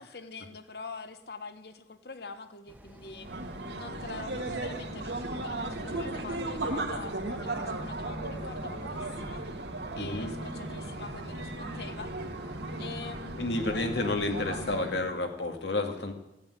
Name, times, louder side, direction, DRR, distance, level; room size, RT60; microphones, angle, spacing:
voice 1, 0.0-3.3 3.8-9.4 9.9-12.1 12.8-13.4, left 3 dB, 60° left, 10 dB, 1.2 m, -44 dB
sound 1, 2.7-13.9, equal, 10° right, 1.3 m, -49 dB
sound 2, 3.2-15.0, right 2 dB, 75° right, 1.9 m, -36 dB
voice 2, 4.1-4.6 10.0-10.4 13.4-16.1, left 2 dB, 80° left, 4 dB, 2.2 m, -31 dB
15.5 x 8.7 x 9.9 m, 0.95 s
head